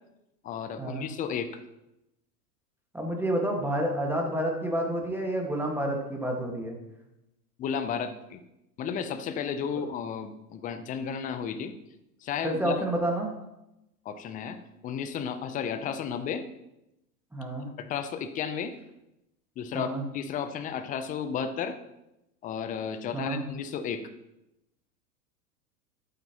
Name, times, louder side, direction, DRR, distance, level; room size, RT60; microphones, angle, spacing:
voice 1, 0.4-1.5 7.6-8.4 8.8-11.7 12.2-12.8 14.1-16.4 17.8-18.7 19.6-21.8 22.4-24.1, left 7 dB, 20° left, 11 dB, 0.4 m, -33 dB
voice 2, 2.9-6.8 9.7-9.8 12.4-13.3 17.3-17.7 19.7-20.0 23.1-23.4, right 1 dB, 5° right, 1 dB, 1.6 m, -29 dB
12.0 x 8.4 x 2.9 m, 0.90 s
hypercardioid pair, 95°, 47 cm